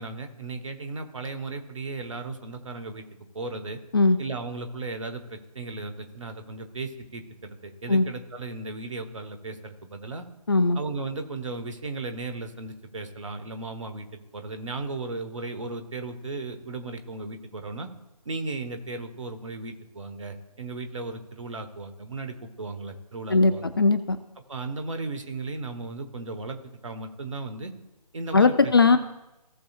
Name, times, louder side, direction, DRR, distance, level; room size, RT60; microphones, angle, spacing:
voice 1, 0.0-3.1 3.3-3.8 4.2-10.2 10.7-17.9 18.2-23.7 24.5-27.7 28.1-29.0, right 3 dB, 50° right, 7 dB, 1.3 m, -36 dB
voice 2, 10.5-10.8 23.3-24.2 28.3-29.0, left 3 dB, 35° left, 12 dB, 0.5 m, -19 dB
17.0 x 6.8 x 2.5 m, 0.96 s
figure-of-eight pair, 150°, 21 cm